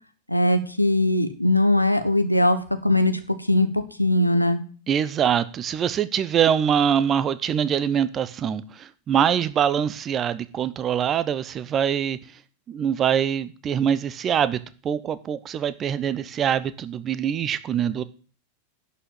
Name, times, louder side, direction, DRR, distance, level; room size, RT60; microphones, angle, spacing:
voice 1, 0.3-2.6 2.8-3.2 3.5-3.7 4.0-4.6, left 1 dB, 90° left, 9 dB, 1.1 m, -20 dB
voice 2, 4.9-12.2 12.7-14.6 14.8-18.0, right 8 dB, 25° right, 15 dB, 0.8 m, -24 dB
11.0 x 6.4 x 7.3 m, 0.39 s
figure-of-eight pair, 90°, 0 cm